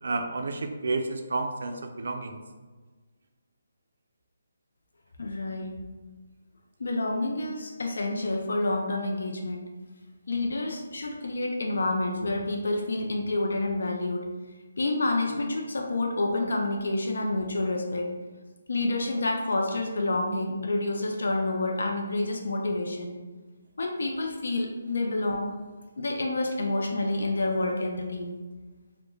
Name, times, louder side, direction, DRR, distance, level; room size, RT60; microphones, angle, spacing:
voice 1, 0.0-2.4, right 3 dB, 65° right, 5 dB, 0.3 m, -31 dB
voice 2, 5.2-5.8 6.8-9.7 10.3-14.3 14.8-18.1 18.7-23.2 23.8-25.5 26.0-28.4, left 2 dB, 75° left, 1 dB, 0.3 m, -28 dB
2.2 x 2.0 x 3.1 m, 1.3 s
hypercardioid pair, 170°, 0 cm